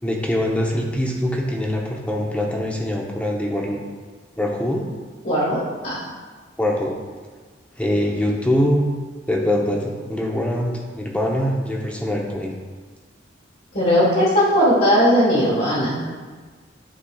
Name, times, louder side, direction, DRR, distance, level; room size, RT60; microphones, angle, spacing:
voice 1, 0.0-3.8 4.4-4.9 6.6-7.0 7.8-8.8 9.3-12.6, left 1 dB, 5° left, -1 dB, 0.8 m, -23 dB
voice 2, 5.2-6.0 13.7-16.0, equal, 45° left, -8 dB, 1.5 m, -18 dB
11.5 x 4.0 x 2.3 m, 1.5 s
head